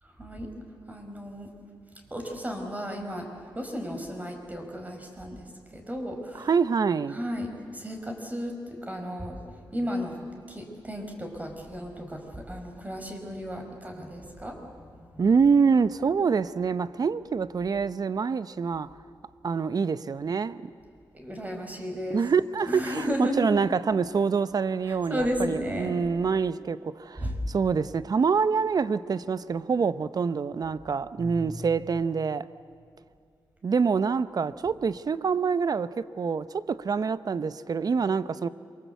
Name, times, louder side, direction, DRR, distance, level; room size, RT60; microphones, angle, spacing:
voice 1, 0.2-0.5 0.9-1.5 2.1-5.5 5.7-6.5 7.1-10.2 10.5-15.1 21.1-22.2 22.7-23.5 24.9-26.0 27.2-27.5 31.2-31.7, equal, 20° right, 5.0 m, -34 dB
voice 2, 6.4-7.2 15.2-18.9 19.4-20.7 22.1-32.5 33.6-38.5, right 5 dB, 50° right, 0.8 m, -26 dB
27.0 x 24.5 x 8.1 m
cardioid pair, 85°, 8 cm